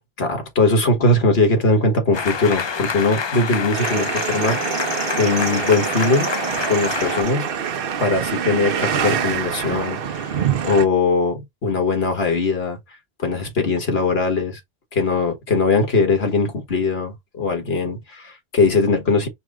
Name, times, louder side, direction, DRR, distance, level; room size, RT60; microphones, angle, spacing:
voice 1, 0.2-4.6 5.2-6.3 6.7-7.5 8.0-12.8 13.2-14.6 14.9-19.3, left 3 dB, 75° left, 1.8 m, -20 dB
sound 1, 2.1-7.2, left 5 dB, 40° left, 0.4 m, -27 dB
sound 2, 3.7-10.9, right 8 dB, 65° right, 0.9 m, -25 dB
4.7 x 2.3 x 4.8 m
omnidirectional pair, 1.0 m